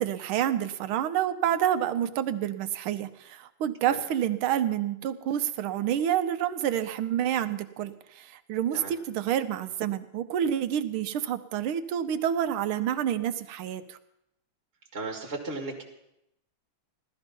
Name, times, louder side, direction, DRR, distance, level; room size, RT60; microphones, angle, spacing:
voice 1, 0.0-14.0, right 10 dB, 85° right, 10 dB, 1.6 m, -28 dB
voice 2, 14.9-15.8, right 3 dB, 30° right, -1 dB, 2.0 m, -35 dB
16.0 x 13.0 x 5.3 m, 0.84 s
omnidirectional pair, 2.3 m